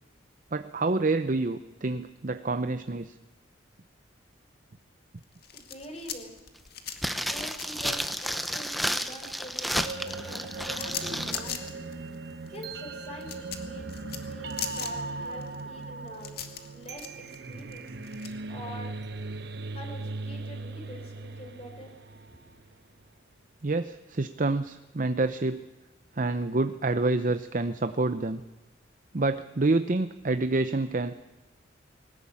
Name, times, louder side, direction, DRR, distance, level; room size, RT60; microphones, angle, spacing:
voice 1, 0.5-3.1 23.6-25.6 26.2-28.4 29.1-31.2, right 2 dB, 45° right, 10 dB, 0.7 m, -27 dB
sound 1, 5.2-9.1 9.4-18.3, left 9 dB, 55° left, 2.1 m, -40 dB
voice 2, 5.5-6.3 7.1-11.7 12.5-16.3 16.7-17.9 18.5-19.0 19.7-21.9 22.3-22.5, left 1 dB, 35° left, 4 dB, 4.7 m, -45 dB
sound 2, 7.0-11.4 11.7-11.8, equal, ahead, 0.9 m, -32 dB
sound 3, 9.8-22.7, right 3 dB, 60° right, 1.1 m, -39 dB
21.0 x 18.5 x 8.6 m, 1.1 s
head